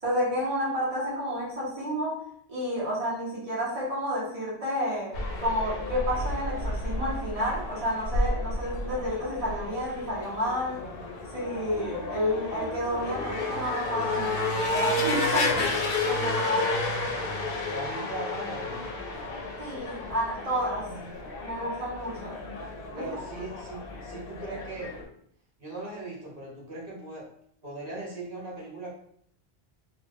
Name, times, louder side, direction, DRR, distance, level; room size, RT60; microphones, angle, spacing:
voice 1, 0.0-10.8 11.3-14.4 14.7-16.7 19.6-20.9 21.4-22.4 22.9-23.1, equal, 35° right, -6 dB, 1.2 m, -30 dB
sound 1, 5.1-25.0, left 2 dB, 65° left, 0.8 m, -32 dB
voice 2, 17.6-18.9 22.9-25.0 25.6-27.3 27.6-28.9, right 2 dB, 55° right, -4 dB, 1.4 m, -39 dB
3.0 x 2.3 x 3.5 m, 0.66 s
omnidirectional pair, 1.1 m